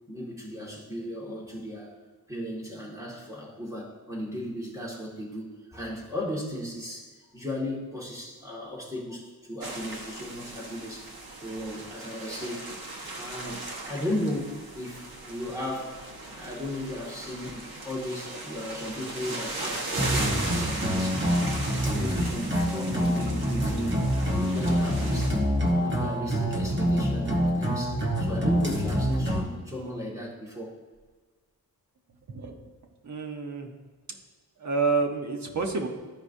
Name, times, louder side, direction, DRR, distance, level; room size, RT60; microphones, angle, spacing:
voice 1, 0.1-1.9 2.3-11.1 11.4-12.7 13.0-16.0 16.3-21.2 21.7-25.4 25.7-30.7, left 1 dB, 10° right, -4 dB, 1.9 m, -36 dB
sound 1, 9.6-25.3, right 2 dB, 70° right, 1.2 m, -37 dB
sound 2, 20.0-29.4, equal, 30° right, 1.3 m, -26 dB
voice 2, 32.3-32.7 33.0-33.7 34.6-35.9, right 4 dB, 50° right, 3 dB, 1.0 m, -28 dB
13.5 x 4.8 x 2.7 m, 1.4 s
wide cardioid pair, 130°, 37 cm